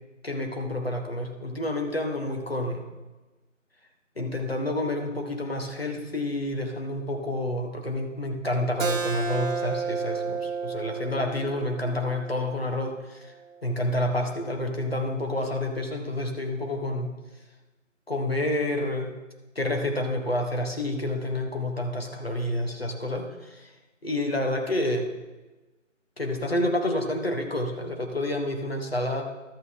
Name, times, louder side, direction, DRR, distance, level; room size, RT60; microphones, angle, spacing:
voice 1, 0.2-2.8 4.2-13.2 13.6-17.1 18.1-19.1 19.5-23.7 24.0-25.1 26.2-29.2, left 1 dB, 50° left, 2 dB, 1.4 m, -29 dB
Keyboard (musical), 8.8-14.0, right 5 dB, 85° right, 0.8 m, -32 dB
12.0 x 8.4 x 3.7 m, 1.2 s
figure-of-eight pair, 170°, 39 cm